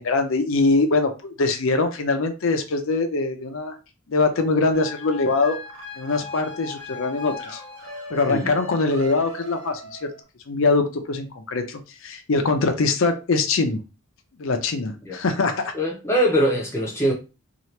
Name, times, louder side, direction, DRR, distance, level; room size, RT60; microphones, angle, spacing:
voice 1, 0.0-3.8 4.1-5.6 6.0-7.6 8.1-10.1 10.5-13.8 14.4-15.7, left 3 dB, 70° left, 0.5 m, -23 dB
sound 1, 4.7-10.2, left 2 dB, 85° right, 1.5 m, -38 dB
voice 2, 15.7-17.1, equal, 10° left, 0.7 m, -22 dB
2.8 x 2.4 x 3.1 m
head